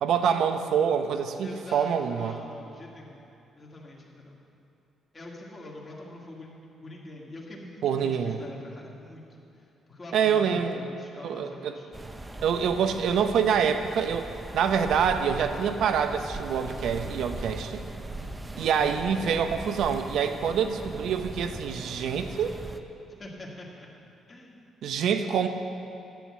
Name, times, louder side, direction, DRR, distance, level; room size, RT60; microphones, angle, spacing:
voice 1, 0.0-2.4 7.8-8.4 10.1-10.8 11.2-11.8 12.4-17.8 18.6-22.5 24.8-25.5, right 7 dB, 75° right, 8 dB, 0.8 m, -26 dB
voice 2, 1.4-3.2 3.6-4.4 5.1-6.5 6.8-11.9 18.5-18.8 23.1-23.9 24.3-24.6, left 2 dB, 30° left, -3 dB, 2.0 m, -44 dB
sound 1, 11.9-22.8, right 2 dB, 15° right, 0.7 m, -40 dB
10.5 x 8.1 x 7.5 m, 2.8 s
cardioid pair, 90°, 0 cm